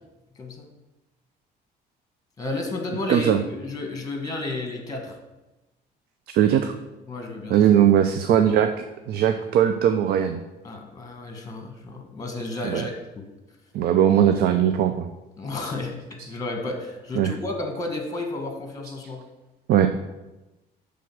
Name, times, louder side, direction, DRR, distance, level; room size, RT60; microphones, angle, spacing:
voice 1, 0.4-0.7 2.4-5.2 7.1-7.6 10.6-13.3 15.4-19.2, left 2 dB, 20° left, 3 dB, 1.3 m, -32 dB
voice 2, 3.1-3.4 6.3-6.7 7.5-8.7 9.1-10.4 12.6-12.9 13.7-15.1 17.2-17.3 19.7-19.9, right 10 dB, 65° right, 8 dB, 0.4 m, -19 dB
6.3 x 3.5 x 6.0 m, 1.0 s
cardioid pair, 110°, 17 cm